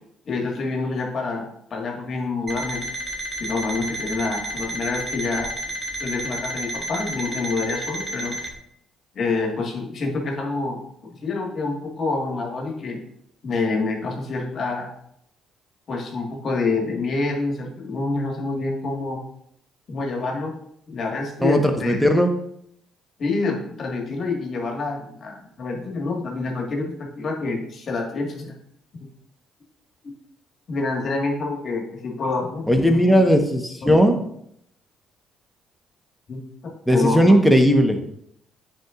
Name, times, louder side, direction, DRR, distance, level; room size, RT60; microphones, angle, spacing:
voice 1, 0.3-2.8 3.4-5.5 6.0-8.4 9.2-10.8 11.2-13.0 13.4-14.9 15.9-19.2 19.9-20.6 20.9-22.1 23.2-28.5 30.0-30.1 30.7-33.2 33.8-34.0 36.3-37.6, left 3 dB, 55° left, 1 dB, 1.8 m, -27 dB
Alarm, 2.5-8.5, right 1 dB, 30° right, 1.5 m, -31 dB
voice 2, 21.4-22.3 32.7-34.2 36.9-38.0, equal, ahead, 5 dB, 1.2 m, -17 dB
9.1 x 4.7 x 2.5 m, 0.72 s
hypercardioid pair, 55°, 0 cm